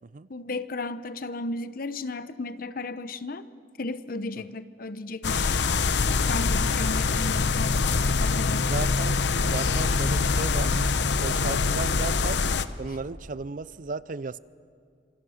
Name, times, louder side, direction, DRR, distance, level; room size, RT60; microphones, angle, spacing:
voice 1, 0.3-3.5 3.8-5.6 6.1-7.9 8.2-8.7, left 2 dB, 55° left, 13 dB, 0.8 m, -34 dB
sound 1, 5.2-12.7, left 4 dB, 85° left, 0.8 m, -24 dB
voice 2, 8.7-10.7 11.2-12.4 12.8-14.4, right 4 dB, 50° right, 18 dB, 0.5 m, -35 dB
26.5 x 24.0 x 6.5 m, 2.2 s
head